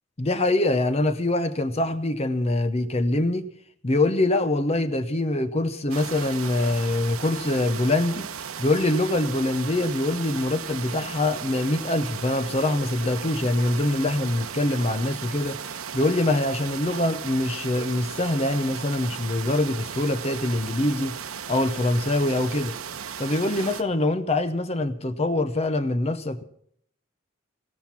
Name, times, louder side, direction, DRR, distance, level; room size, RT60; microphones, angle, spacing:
voice 1, 0.2-3.5 3.8-8.3 8.6-21.1 21.5-22.7 23.2-26.4, left 2 dB, 30° left, 0.7 m, -24 dB
sound 1, 5.9-23.8, right 7 dB, 90° right, 1.0 m, -36 dB
16.0 x 13.0 x 5.9 m
head